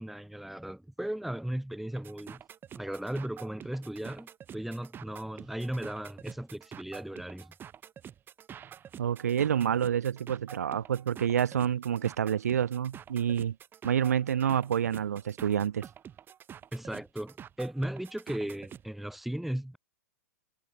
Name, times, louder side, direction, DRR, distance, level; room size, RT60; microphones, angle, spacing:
voice 1, 0.0-2.4 2.7-7.5 16.7-19.8, right 1 dB, ahead, 2.6 m, -36 dB
sound 1, 1.9-18.9, right 9 dB, 20° right, 6.1 m, -48 dB
voice 2, 9.0-13.5 13.8-15.9, right 9 dB, 65° right, 3.0 m, -28 dB
figure-of-eight pair, 100°, 9 cm